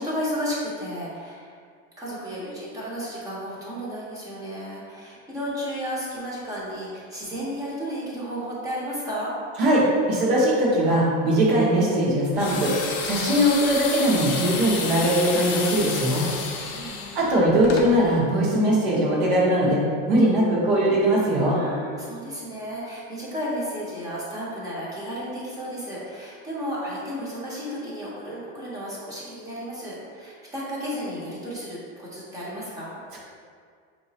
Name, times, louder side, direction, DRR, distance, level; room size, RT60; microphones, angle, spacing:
voice 1, 0.0-1.6 2.0-9.3 16.6-17.2 21.5-33.0, equal, 10° right, -7 dB, 0.6 m, -33 dB
voice 2, 9.6-12.7 13.0-16.3 17.1-19.8 20.1-21.6, right 1 dB, 75° right, -6 dB, 1.2 m, -20 dB
sound 1, 12.4-17.9, left 5 dB, 40° left, 0.5 m, -30 dB
4.8 x 2.9 x 2.7 m, 2.1 s
cardioid pair, 180°, 32 cm